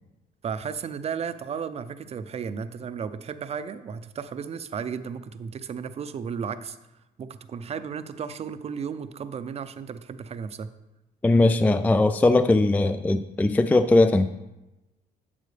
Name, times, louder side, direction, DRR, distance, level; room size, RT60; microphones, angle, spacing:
voice 1, 0.4-6.8 7.2-10.7, right 6 dB, 40° right, 11 dB, 0.6 m, -34 dB
voice 2, 11.2-14.3, left 2 dB, 10° left, 10 dB, 0.3 m, -20 dB
11.0 x 7.3 x 3.4 m, 0.99 s
cardioid pair, 110°, 17 cm